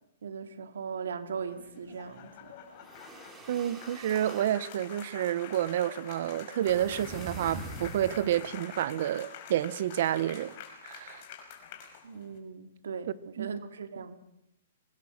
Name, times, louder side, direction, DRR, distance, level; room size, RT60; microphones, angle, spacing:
voice 1, 0.2-2.5 12.0-14.2, right 6 dB, 85° right, 2.4 m, -39 dB
sound 1, 1.4-12.4, left 8 dB, 40° left, 5.3 m, -47 dB
sound 2, 2.7-4.6 6.6-8.5, right 1 dB, 10° right, 3.6 m, -44 dB
voice 2, 3.5-10.5 10.8-11.2 13.4-13.5, right 11 dB, 55° right, 1.0 m, -29 dB
23.5 x 20.0 x 6.6 m
hypercardioid pair, 160°, 0 cm